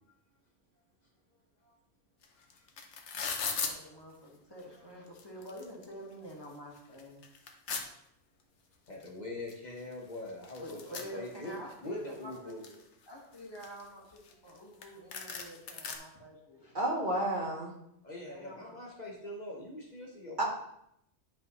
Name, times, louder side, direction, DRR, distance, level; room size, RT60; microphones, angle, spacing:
sound 1, 2.2-2.3 2.5-3.7 4.6-4.7 5.1-5.9 6.3-6.4 6.8-7.8 9.0-9.1 9.5-9.6 9.8-11.7 12.2-12.8 13.3-14.6 14.8-14.9 15.1-16.0, left 5 dB, 75° left, 1.2 m, -38 dB
voice 1, 3.4-7.2 10.6-12.8 13.1-16.8 18.3-18.8, equal, 20° left, -3 dB, 1.7 m, -47 dB
voice 2, 8.9-12.6 18.0-20.4, left 1 dB, 40° left, -2 dB, 1.2 m, -43 dB
voice 3, 16.7-17.7 20.4-20.5, right 1 dB, 45° right, -1 dB, 1.3 m, -30 dB
10.5 x 5.5 x 3.1 m, 0.77 s
omnidirectional pair, 1.2 m